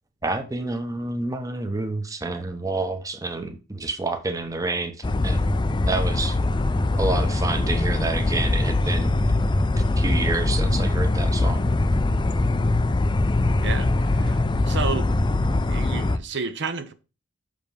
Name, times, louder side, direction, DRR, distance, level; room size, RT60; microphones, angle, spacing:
voice 1, 0.2-5.0 5.2-5.5 5.8-6.4 7.0-9.1 9.8-11.6, right 3 dB, 15° right, 0.9 m, -28 dB
sound 1, 5.0-16.2, left 2 dB, 25° left, 0.4 m, -22 dB
voice 2, 13.6-15.2 15.7-16.9, right 4 dB, 60° right, 0.8 m, -31 dB
6.4 x 5.1 x 5.3 m
head